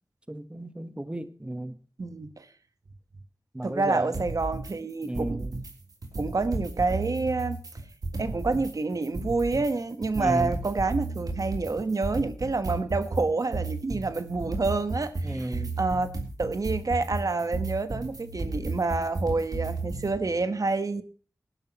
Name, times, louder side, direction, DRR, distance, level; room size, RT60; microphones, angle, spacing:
voice 1, 0.3-1.8 3.5-4.2 5.0-5.6 10.1-10.6 15.2-15.8, right 1 dB, 15° right, 1.1 m, -33 dB
voice 2, 2.0-2.5 3.6-5.4 6.2-7.6 8.2-16.1 16.4-21.0, right 3 dB, 60° right, 1.1 m, -28 dB
sound 1, 4.1-4.7 5.0-5.7 6.0-8.7 9.0-20.1, right 3 dB, 75° right, 3.2 m, -33 dB
18.5 x 11.0 x 2.9 m
wide cardioid pair, 55°, 7 cm